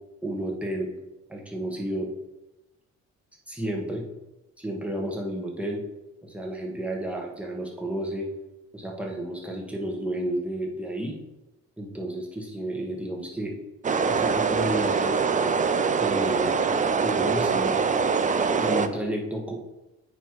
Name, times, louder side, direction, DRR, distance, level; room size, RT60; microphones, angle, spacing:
voice 1, 0.2-0.9 1.3-2.1 3.5-4.0 4.6-5.8 6.2-8.3 8.7-11.1 11.8-13.6 14.1-15.2 16.0-16.5 17.0-17.8 18.6-19.5, right 1 dB, 5° right, -1 dB, 1.4 m, -31 dB
sound 1, 13.8-18.9, right 5 dB, 25° right, 0.4 m, -23 dB
8.8 x 3.1 x 4.8 m, 1.0 s
cardioid pair, 90°, 30 cm